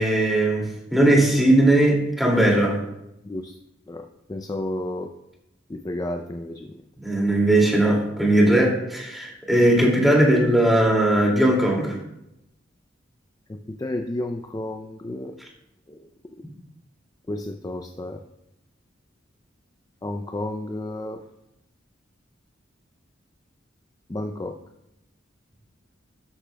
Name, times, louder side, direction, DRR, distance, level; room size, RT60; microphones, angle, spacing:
voice 1, 0.0-2.8 7.0-12.0, right 1 dB, ahead, -2 dB, 2.3 m, -19 dB
voice 2, 4.3-5.1 5.7-6.7 13.5-15.3 17.3-18.2 20.0-21.2 24.1-24.5, left 1 dB, 20° left, 5 dB, 0.4 m, -31 dB
12.5 x 9.8 x 2.2 m, 0.87 s
head